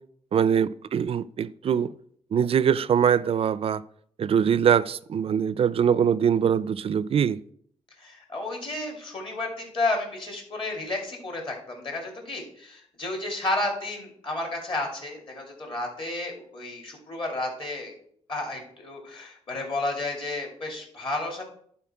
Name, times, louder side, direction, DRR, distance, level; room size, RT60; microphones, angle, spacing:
voice 1, 0.3-1.9 2.3-3.8 4.2-7.4, right 8 dB, 50° right, 0.4 m, -23 dB
voice 2, 8.0-17.9 18.3-21.4, left 2 dB, 40° left, 2.7 m, -32 dB
11.0 x 4.5 x 4.5 m
cardioid pair, 95°, 13 cm